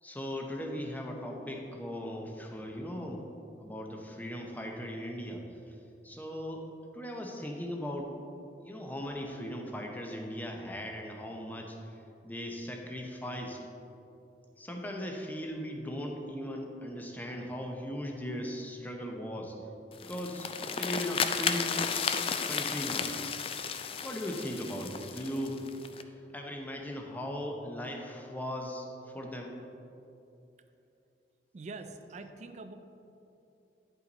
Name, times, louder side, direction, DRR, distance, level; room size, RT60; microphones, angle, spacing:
voice 1, 0.0-3.3 3.6-5.8 6.0-6.7 6.9-8.1 8.6-13.6 14.6-19.6 20.0-20.5 20.8-21.8 22.5-23.1 24.0-25.7 26.1-29.6, equal, 10° left, 1 dB, 0.7 m, -38 dB
sound 1, 19.9-26.0, left 6 dB, 30° left, 0.3 m, -33 dB
voice 2, 31.5-32.7, right 3 dB, 40° right, 8 dB, 0.4 m, -44 dB
10.0 x 5.6 x 4.0 m, 2.8 s
head